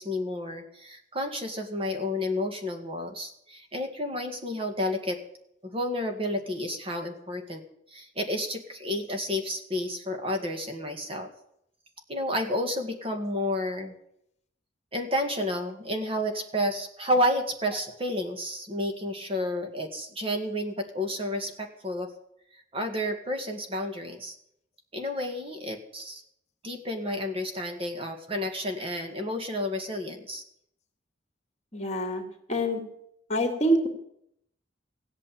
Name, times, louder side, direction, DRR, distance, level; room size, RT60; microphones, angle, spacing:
voice 1, 0.0-5.2 5.6-7.6 7.9-11.3 12.1-13.9 14.9-22.1 22.7-24.4 24.9-26.2 26.6-30.4, left 1 dB, 30° right, 5 dB, 2.0 m, -31 dB
voice 2, 31.7-32.2 32.5-32.8 33.3-33.9, equal, 35° left, 5 dB, 2.7 m, -25 dB
16.0 x 8.8 x 8.7 m, 0.72 s
head